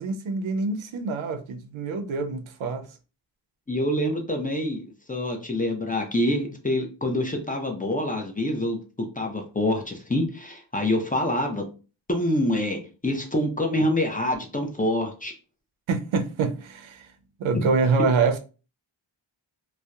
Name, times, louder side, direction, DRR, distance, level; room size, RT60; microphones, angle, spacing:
voice 1, 0.0-2.9 15.9-17.1 17.4-18.4, right 4 dB, 75° right, 0.5 m, -25 dB
voice 2, 3.7-4.8 5.1-8.8 9.2-11.6 12.1-15.3, left 1 dB, 15° left, 0.5 m, -26 dB
2.7 x 2.1 x 2.3 m
cardioid pair, 55°, 49 cm